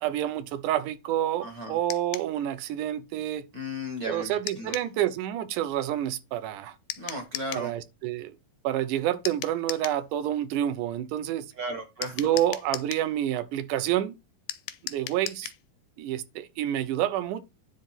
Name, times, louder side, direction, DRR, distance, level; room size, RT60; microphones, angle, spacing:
voice 1, 0.0-3.5 4.1-6.7 7.5-8.4 8.6-11.5 12.2-14.2 14.8-15.5 16.0-17.4, right 12 dB, 75° right, 2.1 m, -28 dB
voice 2, 1.4-1.8 3.5-4.7 7.0-7.7 11.5-12.2, equal, 45° right, 1.3 m, -35 dB
sound 1, 1.9-2.3 4.5-4.9 6.9-7.7 9.3-10.0 12.0-13.1 14.5-15.6, left 13 dB, 85° left, 2.5 m, -37 dB
10.0 x 3.9 x 5.8 m
omnidirectional pair, 4.1 m